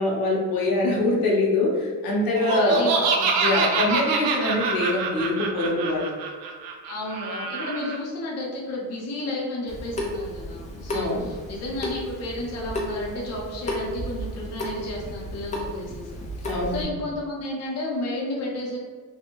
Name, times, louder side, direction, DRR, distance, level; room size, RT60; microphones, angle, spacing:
voice 1, 0.0-2.8 3.4-6.1 10.9-11.3 16.5-16.8, left 2 dB, 80° left, -3 dB, 0.7 m, -24 dB
Laughter, 2.3-7.9, right 4 dB, 80° right, 0.5 m, -25 dB
voice 2, 2.6-3.1 6.8-18.8, left 1 dB, 45° left, -4 dB, 0.7 m, -32 dB
Water tap faucet / Sink (filling or washing) / Drip, 9.7-16.8, left 1 dB, 20° left, 0.4 m, -33 dB
2.6 x 2.3 x 2.9 m, 1.5 s
cardioid pair, 160°, 35 cm